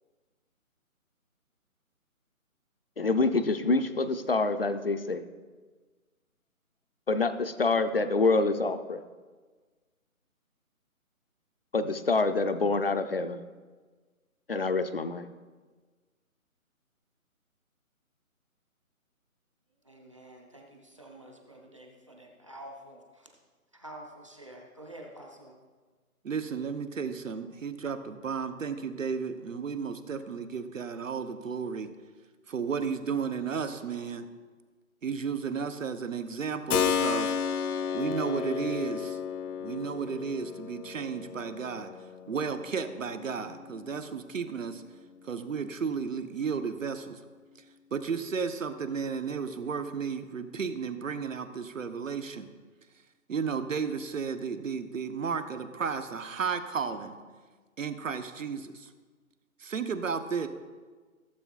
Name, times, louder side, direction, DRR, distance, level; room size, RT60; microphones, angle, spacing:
voice 1, 3.0-5.2 7.1-9.0 11.7-13.4 14.5-15.3, left 3 dB, 45° left, 9 dB, 0.4 m, -26 dB
voice 2, 19.8-23.3 23.7-25.6, right 1 dB, 20° right, 0 dB, 0.7 m, -48 dB
voice 3, 26.2-31.9 32.5-34.3 35.0-37.3 37.9-39.2 39.6-41.9 42.3-44.8 45.2-47.2 47.9-52.5 53.3-57.2 57.8-58.9 59.6-60.5, right 6 dB, 60° right, 10 dB, 0.9 m, -33 dB
Keyboard (musical), 36.7-45.3, left 7 dB, 85° left, 0.6 m, -33 dB
16.0 x 7.4 x 2.4 m, 1.4 s
hypercardioid pair, 170°, 43 cm